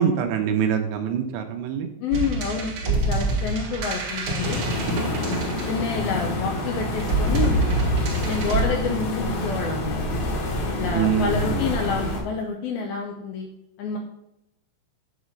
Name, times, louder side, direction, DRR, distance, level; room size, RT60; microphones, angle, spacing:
voice 1, 0.0-1.9 10.9-11.7, right 8 dB, 80° right, 6 dB, 2.9 m, -24 dB
voice 2, 2.0-4.6 5.1-7.6 8.2-10.2 10.7-13.5 13.8-14.0, left 5 dB, 80° left, 2 dB, 2.2 m, -28 dB
sound 1, 2.1-6.2 7.0-8.6, right 2 dB, 60° right, 1.8 m, -25 dB
sound 2, 4.4-12.2, left 1 dB, 65° left, 3.0 m, -28 dB
8.2 x 4.3 x 6.4 m, 0.83 s
omnidirectional pair, 5.0 m